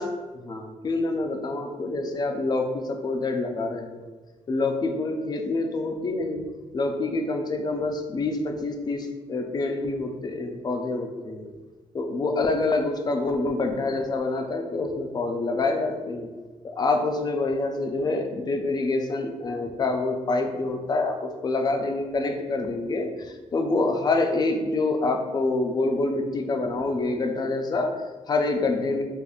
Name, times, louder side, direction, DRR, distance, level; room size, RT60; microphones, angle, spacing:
voice 1, 0.4-4.1 4.5-6.5 6.7-11.5 11.9-16.3 16.6-29.0, left 3 dB, 35° left, 4 dB, 0.4 m, -26 dB
4.9 x 2.4 x 2.3 m, 1.3 s
wide cardioid pair, 150°, 13 cm